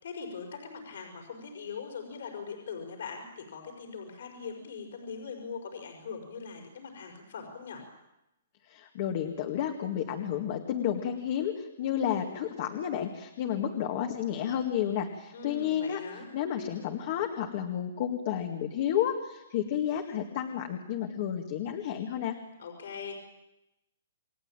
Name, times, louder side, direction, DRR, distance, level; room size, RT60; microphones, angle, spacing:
voice 1, 0.0-7.8 15.3-16.3 22.6-23.1, left 5 dB, 65° left, 3 dB, 5.4 m, -41 dB
voice 2, 8.7-16.0 16.3-22.4, left 9 dB, 35° left, 4 dB, 2.0 m, -31 dB
29.0 x 21.0 x 9.0 m, 0.93 s
hypercardioid pair, 170°, 0 cm